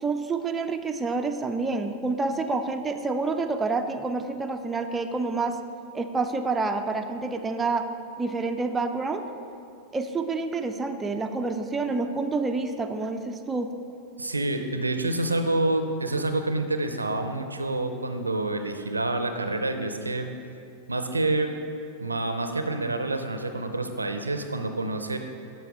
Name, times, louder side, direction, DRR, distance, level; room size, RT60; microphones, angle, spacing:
voice 1, 0.0-5.6 5.9-7.9 8.2-9.2 9.9-13.7, right 3 dB, 15° right, 6 dB, 0.4 m, -28 dB
voice 2, 14.2-20.3 20.9-21.5 22.0-25.2, right 2 dB, 80° right, 7 dB, 0.5 m, -27 dB
11.5 x 4.4 x 3.5 m, 2.6 s
figure-of-eight pair, 90°, 0 cm